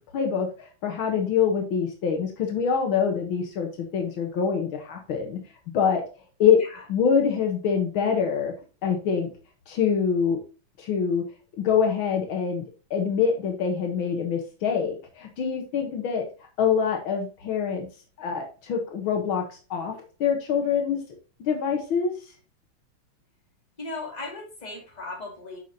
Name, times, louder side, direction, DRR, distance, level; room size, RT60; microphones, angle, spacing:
voice 1, 0.1-5.4 5.7-6.0 6.4-6.6 6.9-8.5 8.8-9.3 9.7-10.4 10.8-11.2 11.6-12.6 12.9-16.3 16.6-17.9 18.2-19.5 19.7-19.9 20.2-21.0 21.5-22.1, left 7 dB, 75° left, 3 dB, 2.0 m, -25 dB
voice 2, 23.8-25.6, left 2 dB, 20° left, -1 dB, 2.3 m, -37 dB
8.0 x 5.9 x 2.8 m, 0.34 s
omnidirectional pair, 2.3 m